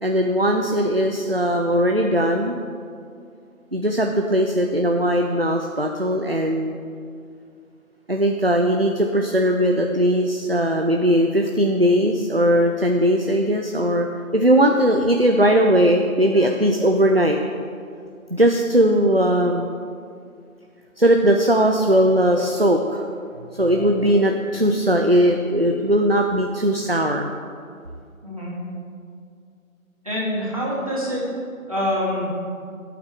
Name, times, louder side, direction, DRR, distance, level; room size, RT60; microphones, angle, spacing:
voice 1, 0.0-2.6 3.7-6.8 8.1-14.1 14.3-17.4 18.3-19.7 21.0-27.3, equal, 45° right, 3 dB, 0.6 m, -19 dB
voice 2, 30.0-31.2 31.7-32.3, equal, 25° right, -7 dB, 2.1 m, -25 dB
17.0 x 8.6 x 3.5 m, 2.3 s
figure-of-eight pair, 175°, 42 cm